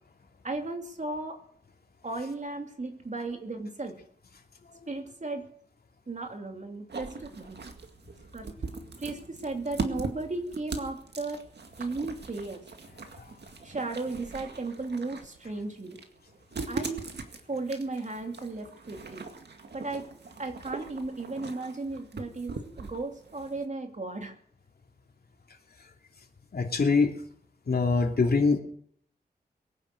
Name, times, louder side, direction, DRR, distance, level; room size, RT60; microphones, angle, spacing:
voice 1, 0.4-1.4 2.0-4.0 4.9-5.4 6.1-7.6 8.3-8.5 9.0-11.4 11.8-12.6 13.6-16.0 16.7-17.0 17.5-19.3 19.7-20.1 20.4-24.3, right 3 dB, 45° right, 4 dB, 2.9 m, -35 dB
sound 1, 6.9-23.7, right 4 dB, 80° right, 2.1 m, -41 dB
voice 2, 26.5-27.1 27.7-28.6, left 4 dB, 65° left, 3 dB, 2.9 m, -23 dB
22.0 x 9.9 x 6.6 m, 0.63 s
wide cardioid pair, 75°, 17 cm